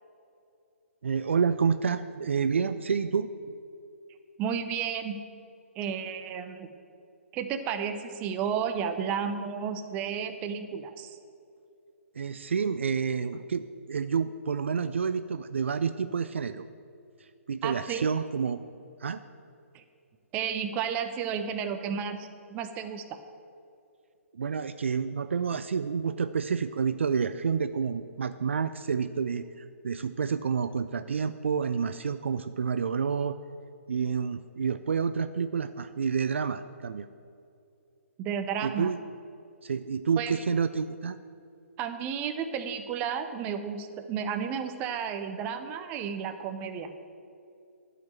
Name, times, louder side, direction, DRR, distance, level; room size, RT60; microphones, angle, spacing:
voice 1, 1.0-3.3 12.2-16.6 17.5-18.6 19.0-19.2 24.3-33.4 33.9-37.1 38.6-39.0 39.6-41.2, right 6 dB, 60° right, 11 dB, 0.4 m, -29 dB
voice 2, 4.4-5.2 5.8-6.7 7.3-11.2 17.6-18.1 19.7-19.8 20.3-23.2 38.2-38.9 40.2-40.3 41.8-46.9, right 7 dB, 20° right, 8 dB, 0.7 m, -32 dB
11.5 x 5.7 x 7.4 m, 2.5 s
figure-of-eight pair, 130°, 8 cm